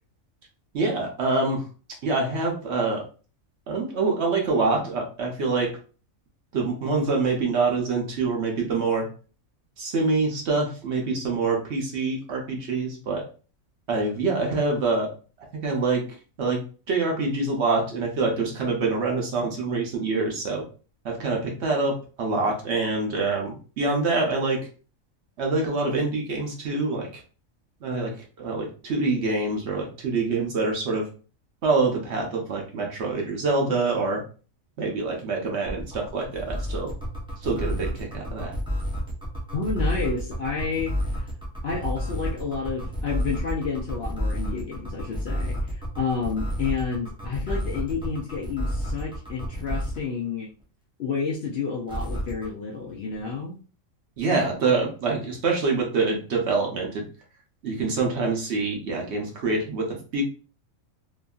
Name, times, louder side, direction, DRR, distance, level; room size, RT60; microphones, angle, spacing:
voice 1, 0.7-1.6 2.0-3.0 3.7-5.7 6.5-9.1 9.8-13.2 13.9-15.1 15.6-16.0 16.4-16.6 16.9-20.6 21.0-24.6 25.4-27.1 27.8-28.1 28.4-31.1 31.6-34.2 34.8-36.9 37.4-38.5 54.2-57.1 57.6-60.2, right 3 dB, 60° right, 0 dB, 0.9 m, -25 dB
sound 1, 35.6-50.0 51.9-52.5, equal, 10° right, 0.3 m, -30 dB
voice 2, 39.5-41.2 41.6-50.5 51.0-53.6, left 5 dB, 65° left, -1 dB, 0.7 m, -30 dB
2.9 x 2.6 x 2.3 m, 0.37 s
omnidirectional pair, 1.4 m